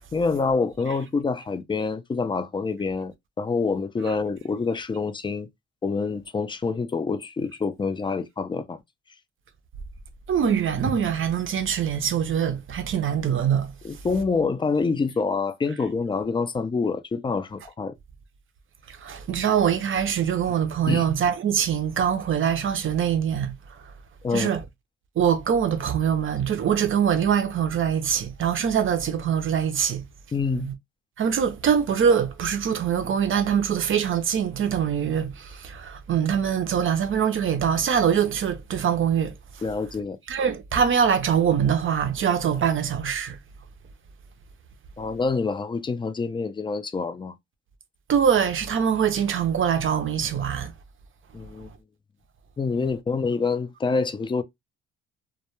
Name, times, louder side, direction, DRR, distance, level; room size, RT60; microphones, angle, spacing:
voice 1, 0.1-5.5 5.8-8.8 13.8-17.9 20.9-21.0 24.2-24.5 30.3-30.7 39.6-40.2 45.0-47.4 51.3-51.7 52.6-54.4, left 4 dB, 15° left, 0.3 m, -26 dB
voice 2, 10.3-13.7 18.9-23.8 24.3-24.6 25.2-30.0 30.5-30.7 31.2-39.3 40.3-43.4 48.1-50.7, right 8 dB, 45° right, 0.5 m, -23 dB
2.2 x 2.1 x 2.9 m
cardioid pair, 90°, 30 cm